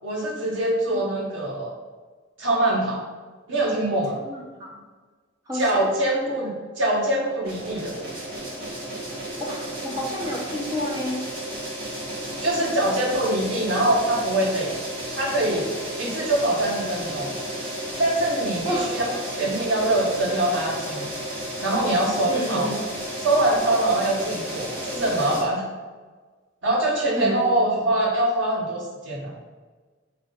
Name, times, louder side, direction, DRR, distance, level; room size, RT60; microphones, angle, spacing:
voice 1, 0.0-1.7 2.4-3.0 3.5-4.2 5.5-8.3 12.4-14.7 15.1-15.7 16.0-17.3 18.0-21.1 21.6-22.7 23.2-25.6 26.6-29.3, right 1 dB, 80° right, -4 dB, 1.6 m, -24 dB
voice 2, 4.2-4.8 5.5-5.9 9.4-11.2 18.6-18.9 22.3-22.7 27.2-27.4, equal, 20° right, -3 dB, 1.2 m, -29 dB
sound 1, 7.4-25.4, right 1 dB, 50° right, 1.7 m, -33 dB
4.7 x 3.8 x 5.4 m, 1.4 s
head